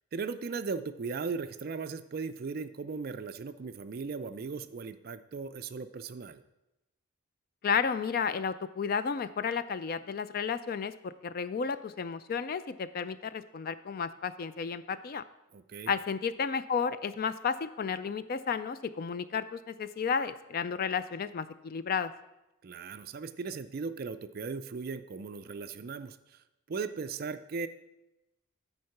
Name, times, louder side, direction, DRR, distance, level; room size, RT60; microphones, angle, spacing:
voice 1, 0.1-6.4 15.5-15.9 22.6-26.4 26.7-27.7, right 4 dB, 45° right, 12 dB, 0.4 m, -37 dB
voice 2, 7.6-15.2 15.9-22.1, left 6 dB, 45° left, 13 dB, 0.3 m, -32 dB
9.4 x 4.5 x 5.8 m, 0.94 s
head